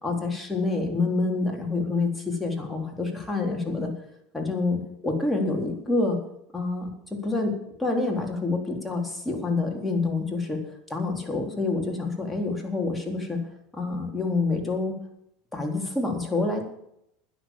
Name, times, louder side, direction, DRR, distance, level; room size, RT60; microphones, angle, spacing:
voice 1, 0.0-3.9 4.3-6.2 6.5-10.6 10.9-13.4 13.7-15.0 15.5-16.7, left 3 dB, 10° left, 2 dB, 3.8 m, -27 dB
12.5 x 10.0 x 7.3 m, 0.76 s
supercardioid pair, 105°, 0 cm